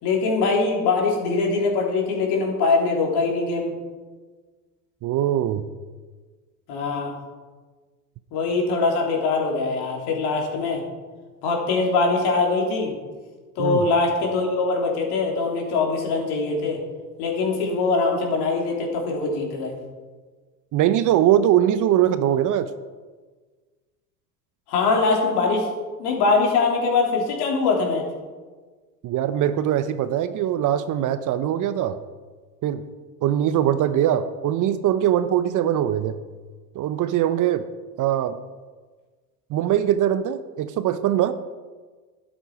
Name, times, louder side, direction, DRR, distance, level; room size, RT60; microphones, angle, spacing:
voice 1, 0.0-3.7 6.7-7.1 8.3-10.8 11.4-13.0 13.6-16.8 17.2-19.8 24.7-25.7 26.0-28.0, left 3 dB, 55° left, 0 dB, 3.5 m, -22 dB
voice 2, 5.0-5.6 13.6-13.8 20.7-22.7 29.0-32.0 32.6-32.8 33.2-36.2 36.7-37.6 38.0-38.4 39.5-41.3, right 11 dB, 40° right, 12 dB, 0.8 m, -21 dB
12.0 x 10.0 x 4.9 m, 1.4 s
hypercardioid pair, 75°, 47 cm